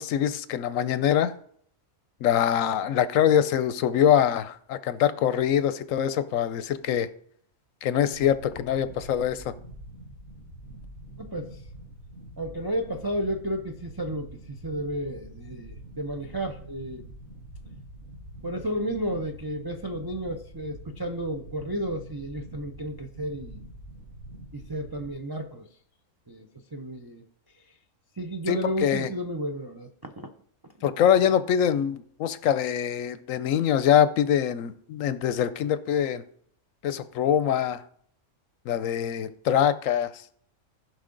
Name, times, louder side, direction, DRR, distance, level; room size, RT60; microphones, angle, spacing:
voice 1, 0.0-1.3 2.2-7.1 7.8-9.5 28.5-29.1 30.8-36.2 36.8-37.8 38.7-40.1, left 9 dB, 70° left, 0.9 m, -24 dB
sound 1, 8.1-25.1, right 1 dB, 75° right, 4.1 m, -45 dB
voice 2, 11.2-11.6 12.4-17.0 18.4-23.7 24.5-25.7 26.3-27.2 28.2-30.1 30.8-30.9, right 1 dB, 40° right, 0.3 m, -32 dB
15.0 x 5.4 x 3.8 m
omnidirectional pair, 1.5 m